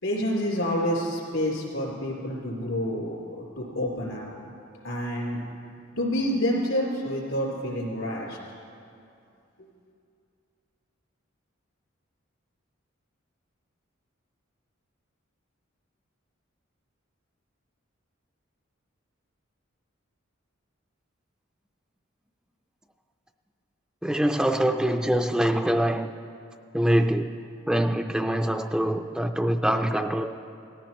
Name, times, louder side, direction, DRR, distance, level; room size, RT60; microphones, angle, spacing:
voice 1, 0.0-3.2 3.6-4.3 4.8-5.4 6.0-8.4, equal, 85° left, -3 dB, 3.6 m, -28 dB
voice 2, 24.0-26.1 26.7-27.3 27.7-30.3, right 1 dB, 5° right, 6 dB, 0.3 m, -24 dB
18.5 x 14.0 x 3.1 m, 2.6 s
head